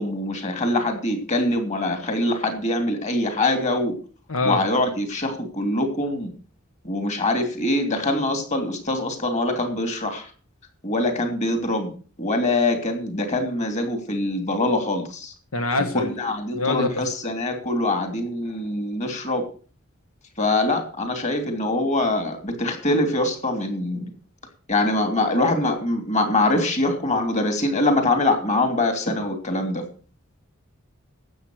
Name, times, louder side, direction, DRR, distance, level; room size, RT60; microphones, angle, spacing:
voice 1, 0.0-3.9 4.4-6.3 6.8-10.3 10.8-11.9 12.2-15.3 15.9-19.4 20.4-24.1 24.7-29.8, left 2 dB, 35° left, 5 dB, 3.0 m, -23 dB
voice 2, 4.3-4.6 15.5-16.2 16.5-16.9, left 2 dB, 80° left, 7 dB, 1.5 m, -24 dB
12.5 x 8.6 x 6.3 m, 0.39 s
head